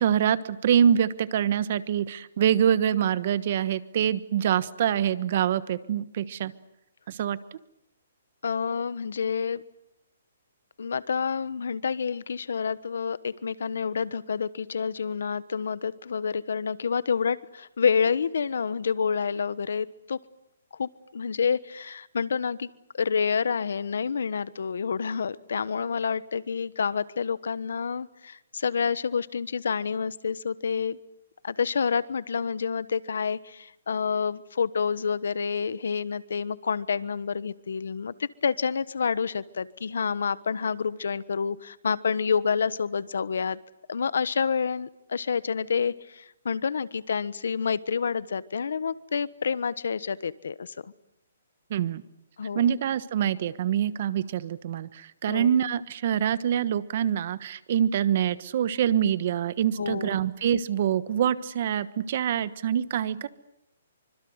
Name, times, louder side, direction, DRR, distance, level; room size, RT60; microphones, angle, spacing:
voice 1, 0.0-6.5 7.1-7.4 51.7-52.0 52.5-63.3, right 9 dB, 45° right, 16 dB, 1.3 m, -25 dB
voice 2, 8.4-9.6 10.8-20.2 20.7-31.0 31.4-43.6 43.9-50.7 52.4-52.6 55.3-55.5 59.7-60.2, left 6 dB, 75° left, 17 dB, 1.2 m, -28 dB
26.0 x 25.0 x 8.1 m, 0.83 s
hypercardioid pair, 165°, 0 cm